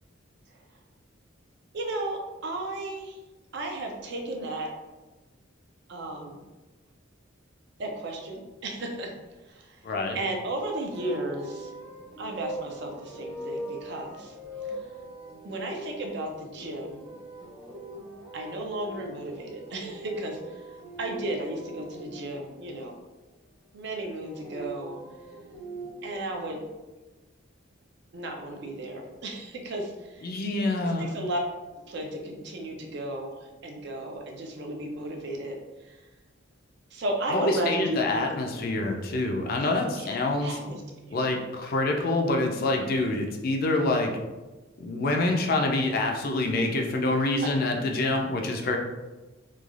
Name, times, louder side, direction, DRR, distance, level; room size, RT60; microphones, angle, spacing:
voice 1, 1.7-3.2 3.5-4.7 5.9-6.4 7.8-9.1 9.5-9.8 10.1-11.7 12.2-14.3 15.4-17.0 18.3-20.6 21.0-23.0 23.7-25.0 26.0-26.6 28.1-30.3 31.0-31.4 31.9-35.6 35.8-36.0 36.9-38.2 39.6-40.1 40.4-41.2 47.4-47.6, right 1 dB, 55° right, 2 dB, 0.4 m, -34 dB
voice 2, 9.8-10.2 30.2-31.1 37.3-40.6 41.1-44.2 44.8-48.8, left 2 dB, 45° left, 2 dB, 0.3 m, -26 dB
sound 1, 10.9-22.8 24.0-26.2, right 1 dB, 10° right, 0.6 m, -41 dB
3.1 x 2.2 x 2.4 m, 1.1 s
head